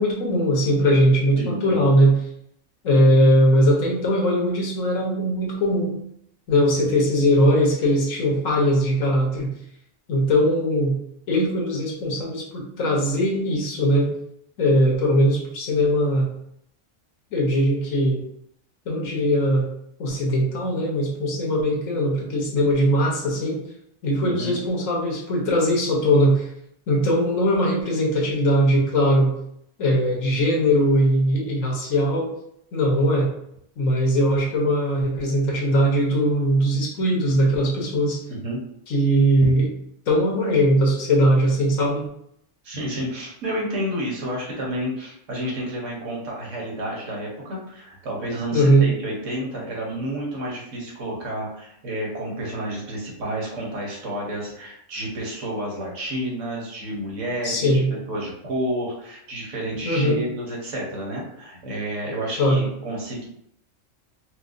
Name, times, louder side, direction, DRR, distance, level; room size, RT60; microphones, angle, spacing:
voice 1, 0.0-2.2 2.8-5.9 6.5-9.5 10.1-11.0 11.3-14.1 14.6-16.3 17.3-18.2 18.9-19.7 20.0-23.6 24.0-26.5 26.9-29.3 29.8-32.3 32.7-33.3 33.8-38.2 38.9-39.7 40.1-42.1 48.5-48.8 57.4-57.9 59.8-60.2 62.4-62.6, equal, 85° left, -2 dB, 1.4 m, -20 dB
voice 2, 1.4-1.8 24.2-24.5 38.3-38.6 42.6-63.3, right 1 dB, 75° right, -3 dB, 1.4 m, -30 dB
4.6 x 2.2 x 2.5 m, 0.73 s
omnidirectional pair, 1.3 m